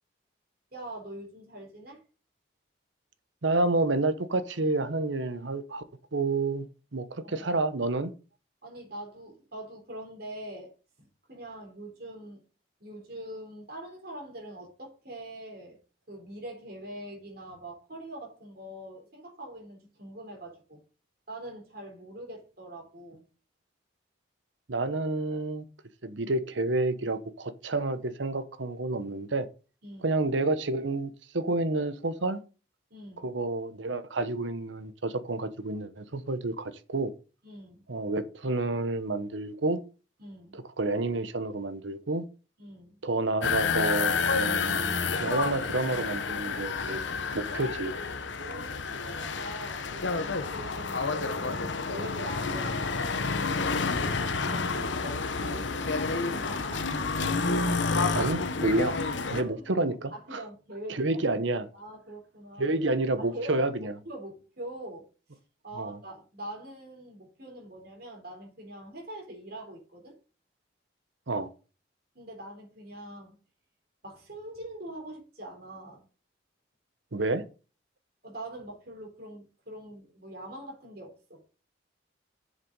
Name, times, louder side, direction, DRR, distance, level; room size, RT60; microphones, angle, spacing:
voice 1, 0.7-2.0 7.2-7.5 8.6-10.7 11.0-12.4 12.8-15.8 16.1-20.8 21.3-23.2 29.8-30.1 32.9-33.3 37.4-37.9 40.2-40.6 42.6-43.0 48.4-52.8 54.0-56.9 59.3-59.8 60.1-61.2 61.7-62.8 63.2-65.1 65.6-70.1 72.1-73.4 74.0-76.0 78.2-81.4, right 1 dB, 55° right, 3.9 m, -43 dB
voice 2, 3.4-5.8 6.1-8.1 24.7-25.6 26.0-29.5 30.0-32.4 33.2-37.1 37.9-39.8 40.5-42.2 43.0-47.0 47.3-47.9 58.1-59.0 59.3-60.4 60.9-61.7 62.6-63.9 65.7-66.0 71.3-71.5 77.1-77.4, right 2 dB, 75° right, 1.0 m, -29 dB
sound 1, 43.4-59.4, left 4 dB, 75° left, 0.9 m, -29 dB
7.5 x 6.8 x 5.4 m
head